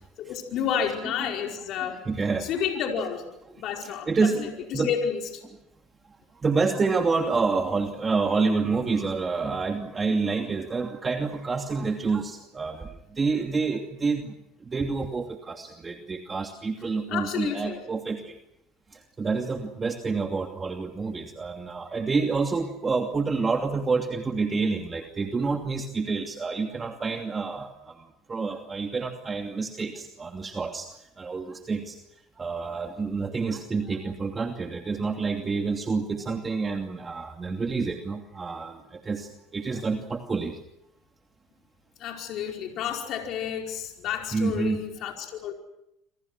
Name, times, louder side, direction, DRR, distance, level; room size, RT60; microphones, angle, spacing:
voice 1, 0.2-2.0 2.4-3.3 3.6-5.4 17.1-17.8 42.0-45.5, left 8 dB, 60° left, 2 dB, 4.8 m, -30 dB
voice 2, 1.8-2.5 3.8-4.9 6.4-14.3 14.7-18.4 19.2-28.0 28.3-30.9 31.2-32.0 32.4-40.5 44.3-44.8, right 4 dB, 25° right, 4 dB, 2.7 m, -28 dB
28.0 x 26.0 x 6.2 m, 0.81 s
supercardioid pair, 85°, 0 cm